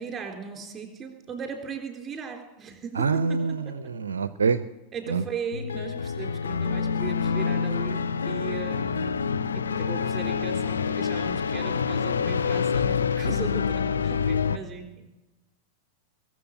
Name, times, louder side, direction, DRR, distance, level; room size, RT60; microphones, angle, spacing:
voice 1, 0.0-3.7 4.9-15.1, right 6 dB, 20° right, 3 dB, 3.6 m, -38 dB
voice 2, 3.0-4.6 5.1-5.2, right 5 dB, 70° right, 14 dB, 0.5 m, -25 dB
sound 1, 5.5-14.6, left 6 dB, 70° left, 0.6 m, -27 dB
22.0 x 7.6 x 8.6 m, 1.1 s
figure-of-eight pair, 90°, 0 cm